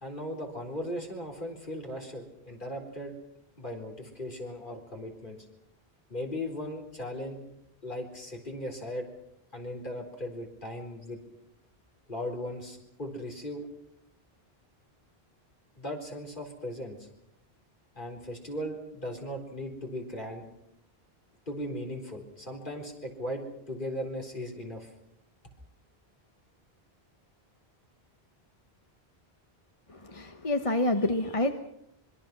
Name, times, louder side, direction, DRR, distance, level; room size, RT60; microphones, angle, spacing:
voice 1, 0.0-3.1 3.6-5.4 6.1-7.4 7.8-9.1 9.5-11.2 12.1-13.7 15.8-17.1 18.0-20.5 21.5-24.9, left 1 dB, 50° left, 2 dB, 4.4 m, -37 dB
voice 2, 29.9-31.5, left 1 dB, 35° left, 6 dB, 1.2 m, -28 dB
26.0 x 23.0 x 6.1 m, 0.77 s
omnidirectional pair, 1.0 m